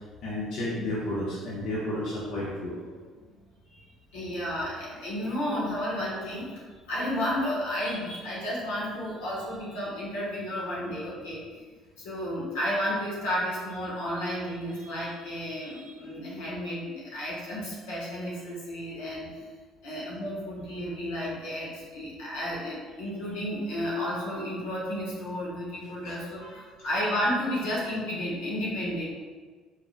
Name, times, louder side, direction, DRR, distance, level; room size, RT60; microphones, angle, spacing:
voice 1, 0.2-2.7 10.8-10.9 26.0-26.1 26.9-27.0, left 1 dB, 70° left, -7 dB, 1.1 m, -32 dB
voice 2, 4.1-11.6 12.0-19.5 19.8-29.1, equal, 90° left, -6 dB, 1.4 m, -32 dB
4.7 x 3.8 x 2.4 m, 1.5 s
supercardioid pair, 80°, 0 cm